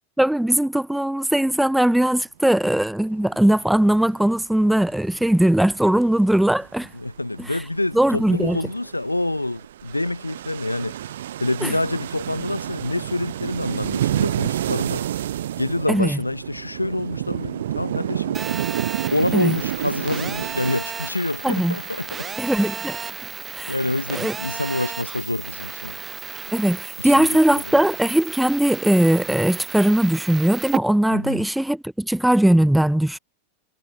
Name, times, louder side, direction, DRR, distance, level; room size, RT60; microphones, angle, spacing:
voice 1, 0.2-6.9 7.9-8.6 11.6-11.7 15.9-16.2 19.3-19.6 21.4-21.7 22.4-23.0 23.5-23.7 24.2-24.3 26.5-33.2, right 1 dB, 5° right, 3.1 m, -19 dB
sound 1, 3.0-3.6 4.5-6.9 7.3-20.8, right 11 dB, 60° right, 2.8 m, -29 dB
voice 2, 6.9-11.0 11.4-15.1 15.6-18.4 19.1-22.3 22.6-22.8 23.7-26.0 27.0-27.7 31.1-31.5, left 2 dB, 85° left, 5.9 m, -27 dB
Telephone, 18.3-30.8, right 6 dB, 20° right, 6.4 m, -34 dB
figure-of-eight pair, 90°, 0 cm